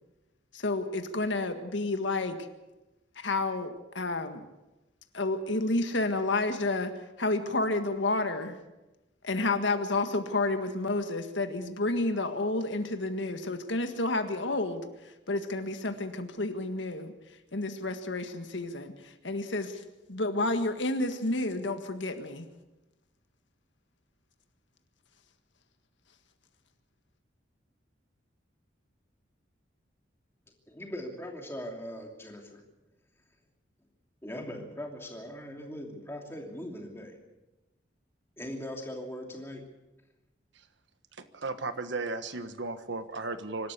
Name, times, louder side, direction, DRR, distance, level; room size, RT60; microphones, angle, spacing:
voice 1, 0.5-2.4 3.2-4.4 5.1-6.9 7.2-8.6 9.2-17.1 17.5-19.8 20.1-22.5, left 2 dB, 75° left, 7 dB, 1.8 m, -30 dB
voice 2, 30.7-32.6 34.2-37.2 38.4-39.6, equal, 15° left, 1 dB, 2.9 m, -40 dB
voice 3, 41.2-43.7, right 3 dB, 75° right, 11 dB, 1.4 m, -35 dB
24.5 x 12.5 x 8.3 m, 1.0 s
head